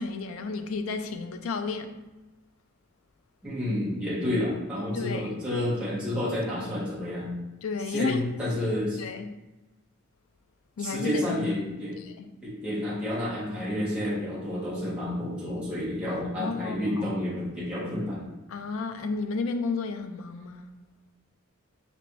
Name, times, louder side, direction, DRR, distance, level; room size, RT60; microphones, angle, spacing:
voice 1, 0.0-2.0 4.9-5.3 7.6-8.2 9.0-9.3 10.8-11.3 12.2-12.3 16.1-16.8 18.5-20.7, left 4 dB, 75° left, 0.4 m, -32 dB
voice 2, 3.4-7.3 7.9-9.0 10.8-12.0 12.4-18.3, left 1 dB, 5° right, 1.2 m, -30 dB
5.1 x 2.8 x 3.0 m
head